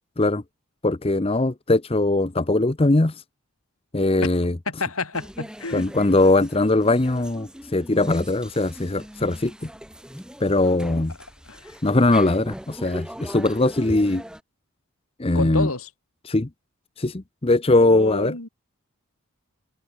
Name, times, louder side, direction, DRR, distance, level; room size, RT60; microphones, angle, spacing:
voice 1, 0.8-3.1 3.9-4.5 5.7-9.5 10.4-11.1 11.8-14.2 15.2-15.7 16.2-16.5 17.0-18.4, left 2 dB, 25° left, 0.7 m, -20 dB
voice 2, 4.7-5.9 11.4-11.8 15.3-15.9 17.7-18.5, left 3 dB, 75° left, 4.7 m, -29 dB
sound 1, 5.1-14.4, equal, 5° right, 1.9 m, -39 dB
head